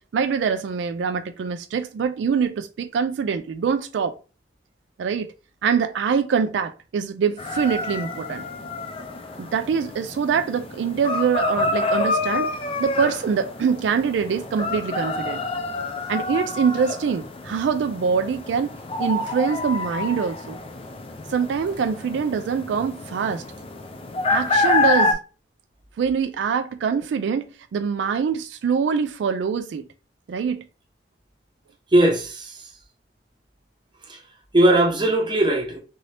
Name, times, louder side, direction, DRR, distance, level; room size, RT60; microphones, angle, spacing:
voice 1, 0.1-4.1 5.0-5.3 5.6-8.4 9.4-15.4 16.1-18.7 19.0-20.6 21.3-23.4 24.3-25.2 26.0-29.8 30.3-30.6, right 6 dB, 80° right, 0.3 m, -24 dB
sound 1, 7.4-25.1, left 2 dB, 30° left, 0.4 m, -27 dB
voice 2, 31.9-32.6 34.1-34.2 34.5-35.8, right 1 dB, 25° right, 0.7 m, -19 dB
2.8 x 2.6 x 3.2 m
head